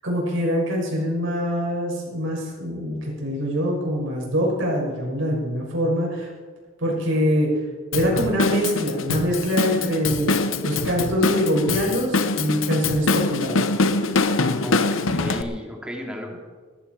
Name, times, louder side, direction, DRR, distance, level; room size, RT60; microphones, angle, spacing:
voice 1, 0.0-6.3 6.8-7.5 7.9-10.4 10.6-13.6, equal, 75° right, -2 dB, 6.2 m, -24 dB
Drum kit / Drum, 7.9-15.4, left 3 dB, 80° left, 0.9 m, -24 dB
voice 2, 14.6-16.4, left 1 dB, 5° right, 0 dB, 2.6 m, -33 dB
19.5 x 13.5 x 4.7 m, 1.4 s
head